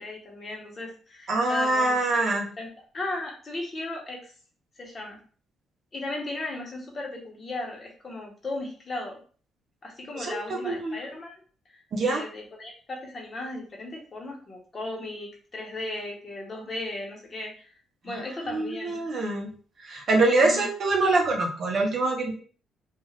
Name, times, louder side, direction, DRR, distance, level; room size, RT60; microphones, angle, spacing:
voice 1, 0.0-2.0 2.6-4.3 4.8-5.2 5.9-9.2 9.8-11.3 11.7-17.8 18.0-19.0 20.4-20.7, left 2 dB, 35° left, 0 dB, 1.0 m, -36 dB
voice 2, 1.3-2.5 10.1-10.4 10.6-10.9 11.9-12.2 18.5-19.5 19.9-22.3, right 2 dB, 55° right, 1 dB, 0.8 m, -24 dB
2.4 x 2.4 x 3.2 m, 0.41 s
cardioid pair, 90°, 0 cm